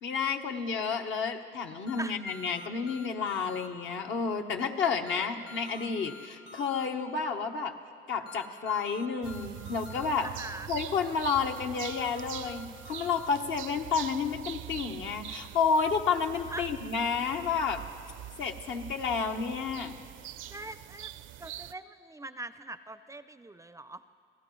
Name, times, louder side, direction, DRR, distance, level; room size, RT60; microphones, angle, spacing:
voice 1, 0.0-7.7 8.1-10.3 10.7-17.8 18.4-19.9, left 5 dB, 75° left, 3 dB, 1.1 m, -30 dB
sound 1, 1.9-3.7 5.1-6.9 8.3-10.1 11.4-13.3, left 3 dB, 50° left, 1.6 m, -49 dB
sound 2, 9.2-21.7, right 12 dB, 75° right, 0.5 m, -44 dB
voice 2, 10.2-10.7 16.5-16.7 20.5-21.1 21.4-24.0, right 2 dB, 15° right, 13 dB, 0.4 m, -42 dB
27.0 x 16.5 x 3.1 m, 2.3 s
cardioid pair, 90°, 20 cm